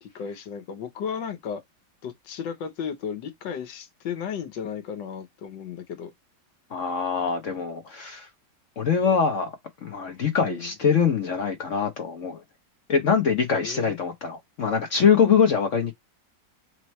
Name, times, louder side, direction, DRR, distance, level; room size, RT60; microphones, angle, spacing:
voice 1, 0.0-1.6 2.0-6.1 10.4-10.7 13.6-14.0, left 7 dB, 75° left, 1.6 m, -34 dB
voice 2, 6.7-8.3 8.8-9.6 9.8-12.4 12.9-15.9, left 6 dB, 55° left, 0.9 m, -23 dB
4.3 x 3.1 x 3.0 m
omnidirectional pair, 2.0 m